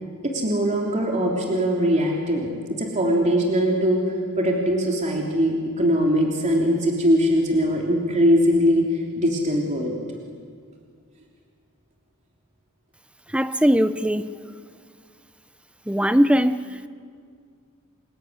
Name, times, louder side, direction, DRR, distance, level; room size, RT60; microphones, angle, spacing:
voice 1, 0.2-4.0 4.4-10.0, equal, 35° right, 3.3 m, -21 dB
voice 2, 13.3-14.4 15.9-16.9, equal, 5° right, 0.8 m, -20 dB
29.0 x 21.5 x 9.6 m
head